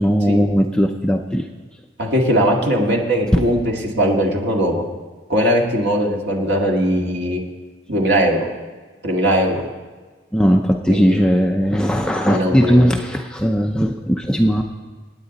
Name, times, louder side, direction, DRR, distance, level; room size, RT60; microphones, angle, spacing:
voice 1, 0.0-1.5 3.3-3.4 10.3-14.6, equal, 5° left, 2 dB, 0.6 m, -17 dB
voice 2, 2.0-4.8 5.3-7.4 7.9-8.5 9.0-9.6 10.9-11.2 12.3-12.9, equal, 65° right, -1 dB, 2.1 m, -19 dB
27.0 x 9.0 x 4.1 m, 1.3 s
head